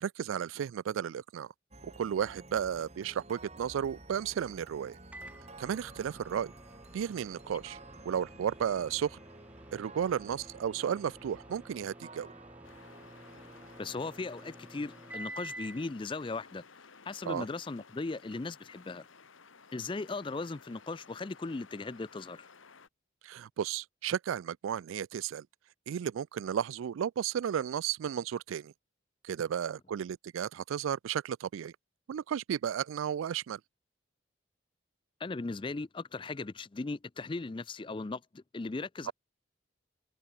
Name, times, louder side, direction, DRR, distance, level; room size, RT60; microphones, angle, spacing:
voice 1, 0.0-1.5 1.8-5.0 5.6-6.5 6.9-7.8 8.1-9.2 9.7-12.3 17.3-17.5 23.2-25.5 25.9-28.7 29.2-31.7 32.1-33.6 39.1-39.2, right 8 dB, 90° right, 0.3 m, -33 dB
sound 1, 1.7-15.0, right 2 dB, 35° right, 3.6 m, -52 dB
Microwave oven, 5.1-15.9, right 1 dB, 5° right, 2.0 m, -50 dB
sound 2, 12.6-22.9, left 5 dB, 85° left, 1.8 m, -56 dB
voice 2, 13.8-16.6 17.1-19.0 19.7-22.5 35.2-39.1, left 3 dB, 25° left, 0.4 m, -38 dB
open air
head